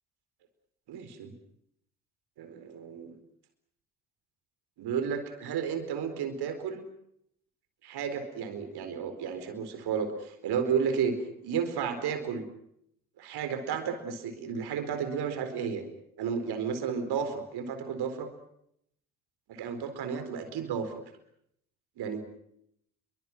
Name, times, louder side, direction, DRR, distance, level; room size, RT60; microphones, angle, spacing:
voice 1, 0.9-1.3 2.4-3.2 4.8-6.8 7.8-11.2 11.4-12.5 13.2-15.9 16.2-18.3 19.5-20.9 22.0-22.2, right 7 dB, 60° right, 9 dB, 4.3 m, -32 dB
29.0 x 23.0 x 6.1 m, 0.73 s
figure-of-eight pair, 50°, 45 cm